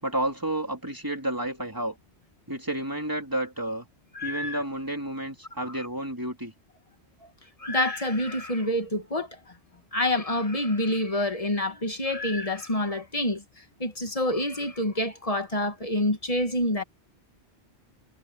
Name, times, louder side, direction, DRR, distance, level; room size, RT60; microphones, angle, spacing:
voice 1, 0.0-2.0 2.5-3.9 4.2-6.5, right 1 dB, 20° right, 3.2 m, -31 dB
voice 2, 4.1-4.6 7.6-9.4 9.9-16.8, left 1 dB, 35° left, 1.5 m, -27 dB
omnidirectional pair, 1.1 m